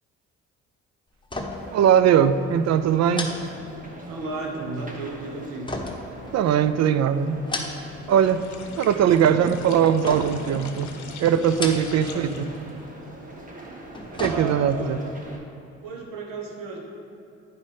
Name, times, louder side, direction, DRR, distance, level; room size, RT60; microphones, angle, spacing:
sound 1, 1.2-1.8 2.1-2.2 3.1-4.2 5.7-6.8 7.3-8.1 8.4-9.0 10.0-10.6 11.4-12.2 12.5-12.6 13.7-14.9 15.3-15.4, left 2 dB, 15° left, 1.0 m, -34 dB
sound 2, 1.5-15.4, right 1 dB, 25° right, 1.3 m, -43 dB
voice 1, 1.7-3.3 6.3-7.4 8.1-8.4 8.8-10.9 11.2-12.5 14.2-15.0, right 8 dB, 50° right, 12 dB, 0.4 m, -20 dB
voice 2, 4.1-5.7 11.9-12.3 14.1-15.1 15.8-16.8, right 3 dB, 80° right, 0 dB, 1.3 m, -34 dB
sound 3, 8.0-12.7, left 6 dB, 60° left, 0.8 m, -43 dB
9.4 x 5.3 x 3.3 m, 2.6 s
supercardioid pair, 55°, 33 cm